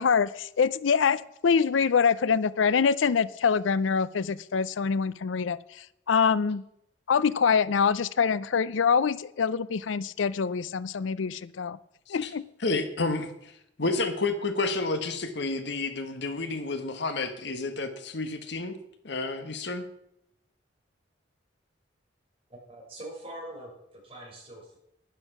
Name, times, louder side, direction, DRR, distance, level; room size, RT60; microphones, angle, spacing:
voice 1, 0.0-6.6 7.1-11.8 12.1-12.4, left 6 dB, 80° left, 19 dB, 0.5 m, -25 dB
voice 2, 12.6-13.5 13.8-18.8 19.0-19.9, left 3 dB, 65° left, 8 dB, 1.5 m, -30 dB
voice 3, 22.5-23.7 24.0-24.8, right 1 dB, 30° right, -2 dB, 6.0 m, -43 dB
12.0 x 11.0 x 6.1 m, 0.77 s
head